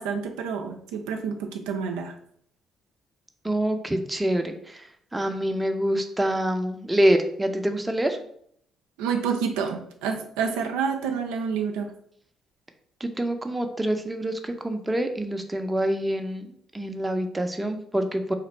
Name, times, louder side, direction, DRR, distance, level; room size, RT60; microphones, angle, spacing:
voice 1, 0.0-2.1 9.0-11.9, right 6 dB, 90° right, 3 dB, 0.4 m, -28 dB
voice 2, 3.4-4.9 5.1-8.2 13.0-18.3, right 1 dB, 15° right, 5 dB, 0.6 m, -26 dB
3.0 x 2.4 x 4.3 m, 0.66 s
supercardioid pair, 60°, 0 cm